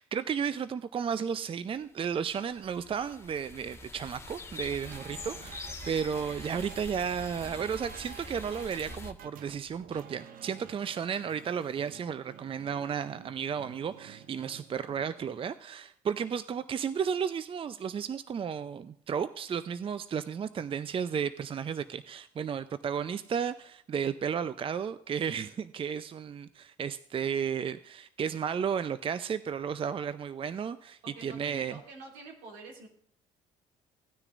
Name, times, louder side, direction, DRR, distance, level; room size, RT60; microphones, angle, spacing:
voice 1, 0.0-31.8, right 7 dB, 35° right, 13 dB, 0.6 m, -33 dB
sound 1, 2.0-9.1, left 3 dB, 15° left, 1.6 m, -45 dB
sound 2, 4.7-15.3, right 9 dB, 60° right, 0.9 m, -50 dB
voice 2, 31.0-32.9, right 3 dB, 80° right, 1 dB, 2.8 m, -47 dB
17.0 x 9.8 x 2.5 m, 0.64 s
hypercardioid pair, 60°, 16 cm